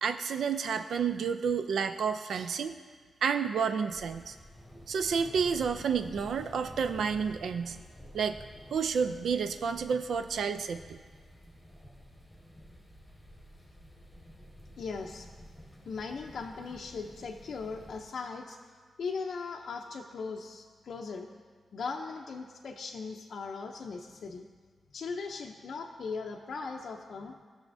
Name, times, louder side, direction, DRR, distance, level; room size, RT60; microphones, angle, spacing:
voice 1, 0.0-2.7 3.2-4.4 4.9-7.8 8.1-8.4 8.7-11.0, right 6 dB, 70° right, 8 dB, 0.4 m, -30 dB
sound 1, 3.9-18.0, equal, 5° left, 1.4 m, -51 dB
voice 2, 14.8-15.3 15.9-18.6 19.0-21.3 21.7-24.5 24.9-27.3, left 4 dB, 55° left, 1 dB, 0.5 m, -39 dB
18.5 x 6.3 x 2.6 m, 1.5 s
wide cardioid pair, 170°, 0 cm